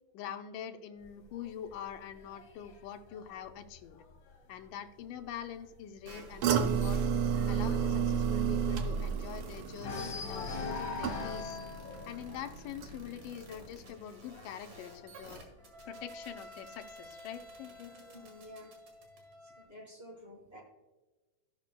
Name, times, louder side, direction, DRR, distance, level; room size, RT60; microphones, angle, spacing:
voice 1, 0.1-4.0 4.5-7.0 7.5-11.6 12.1-15.4 15.8-17.9, left 9 dB, 80° left, 6 dB, 2.2 m, -44 dB
sound 1, 1.0-4.6 5.0-5.4 5.6-5.7 6.1-9.4 9.8-16.3 17.2-18.2, left 4 dB, 60° left, 1.6 m, -44 dB
sound 2, 6.0-19.6, right 1 dB, 60° right, 3.2 m, -52 dB
sound 3, 6.4-11.6 11.9-12.4 12.8-12.9, right 7 dB, 75° right, 1.4 m, -31 dB
voice 2, 17.9-18.7 19.4-20.6, left 1 dB, 15° right, -3 dB, 2.3 m, -51 dB
16.0 x 5.9 x 2.2 m, 1.1 s
omnidirectional pair, 3.7 m